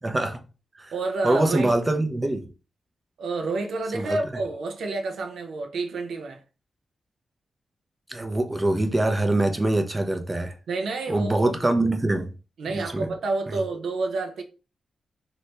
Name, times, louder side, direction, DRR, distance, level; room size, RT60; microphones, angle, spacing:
voice 1, 0.0-0.4 0.8-0.9 1.2-2.5 3.9-4.4 8.1-10.5 11.1-12.3 12.7-13.1 13.5-13.6, right 2 dB, 20° right, 0.5 m, -24 dB
voice 2, 0.9-1.7 3.2-6.4 10.7-11.5 12.6-14.4, right 3 dB, 85° right, 0.6 m, -29 dB
2.9 x 2.7 x 3.3 m
wide cardioid pair, 115°, 0 cm